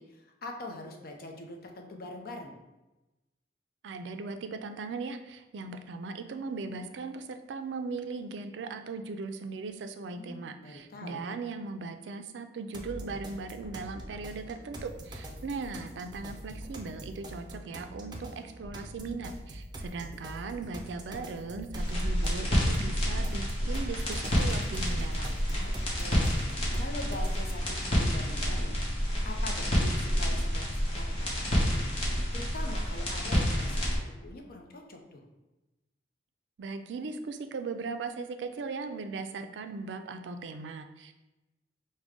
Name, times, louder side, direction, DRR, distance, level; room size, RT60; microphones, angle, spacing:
voice 1, 0.0-2.5 10.0-11.2 25.5-31.8 32.3-35.3, left 2 dB, 55° left, 2 dB, 0.6 m, -43 dB
voice 2, 3.8-25.4 36.6-41.1, right 4 dB, 85° right, 8 dB, 0.4 m, -38 dB
sound 1, 12.7-27.7, right 1 dB, 25° right, 0.4 m, -44 dB
sound 2, 21.7-34.0, equal, 35° left, 1.0 m, -29 dB
4.9 x 2.2 x 3.5 m, 1.0 s
head